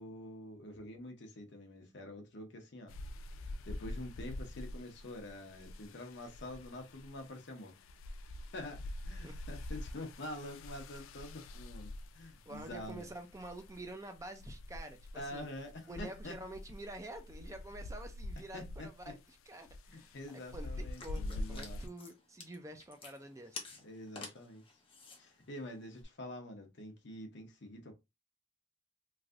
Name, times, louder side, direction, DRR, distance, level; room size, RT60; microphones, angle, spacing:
voice 1, 0.0-2.9 3.7-7.8 8.3-13.1 15.1-16.4 18.5-18.9 19.9-21.8 23.8-24.6 25.2-27.9, left 1 dB, 60° left, 0.8 m, -46 dB
sound 1, 2.9-21.9, left 1 dB, 85° left, 0.3 m, -46 dB
voice 2, 12.5-15.5 15.9-23.6, right 1 dB, 15° right, 0.4 m, -48 dB
sound 2, 20.9-26.0, left 4 dB, 25° left, 0.8 m, -51 dB
3.2 x 2.6 x 2.4 m
head